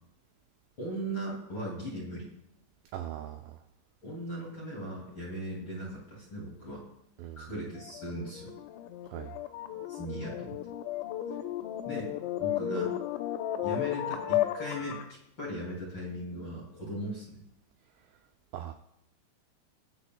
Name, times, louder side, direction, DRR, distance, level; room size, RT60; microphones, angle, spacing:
voice 1, 0.8-2.3 4.0-6.8 7.4-8.5 9.9-10.6 11.9-12.1 12.4-12.9 13.6-17.4, equal, 35° left, -4 dB, 2.3 m, -38 dB
voice 2, 2.9-3.6 7.2-7.5 9.1-9.4 18.5-18.7, right 12 dB, 85° right, 5 dB, 2.4 m, -40 dB
sound 1, 7.8-15.1, left 12 dB, 80° left, 2.7 m, -34 dB
23.0 x 9.1 x 2.3 m, 0.82 s
omnidirectional pair, 5.8 m